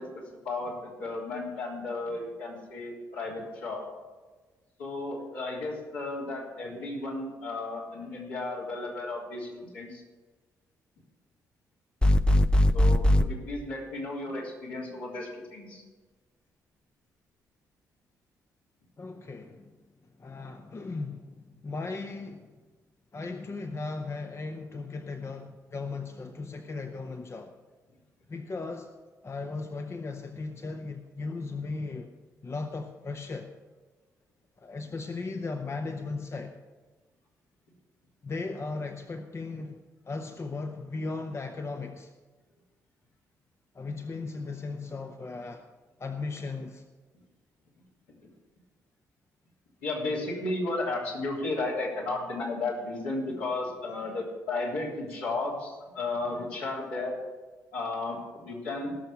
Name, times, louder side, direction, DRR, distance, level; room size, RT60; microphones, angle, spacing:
voice 1, 0.0-3.9 4.8-10.0 12.7-15.8 49.8-57.2 57.7-58.9, left 2 dB, 70° left, -4 dB, 3.3 m, -34 dB
sound 1, 12.0-13.3, left 1 dB, 10° left, 0.5 m, -20 dB
voice 2, 19.0-19.6 20.2-22.5 23.1-27.5 28.3-28.9 29.2-32.1 32.4-33.5 34.6-36.5 38.2-39.8 40.1-42.1 43.7-45.6 46.0-46.8 55.1-55.2, left 3 dB, 30° left, 6 dB, 0.9 m, -37 dB
17.5 x 6.8 x 6.2 m, 1.3 s
figure-of-eight pair, 40°, 9 cm